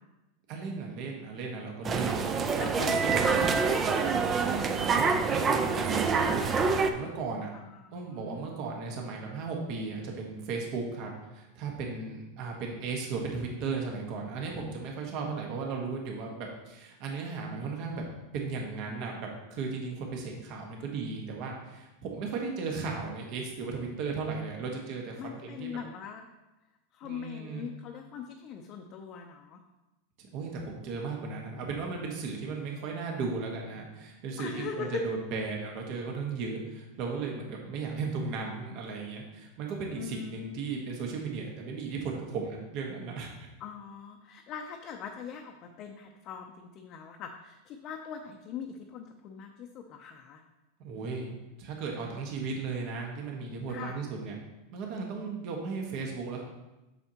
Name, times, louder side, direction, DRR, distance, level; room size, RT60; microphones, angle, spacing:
voice 1, 0.5-3.4 4.9-7.5 7.9-18.0 18.3-25.7 27.0-27.7 30.2-43.5 50.8-54.4 54.7-56.4, right 4 dB, 50° right, 0 dB, 1.4 m, -36 dB
sound 1, 1.8-6.9, right 5 dB, 25° right, 0.5 m, -26 dB
voice 2, 2.6-4.3 7.5-8.6 25.2-26.2 26.9-29.6 34.4-35.0 39.9-40.7 43.6-50.4 53.7-54.0, left 7 dB, 40° left, 2 dB, 0.6 m, -41 dB
8.0 x 6.2 x 2.9 m, 1.0 s
supercardioid pair, 135°, 0 cm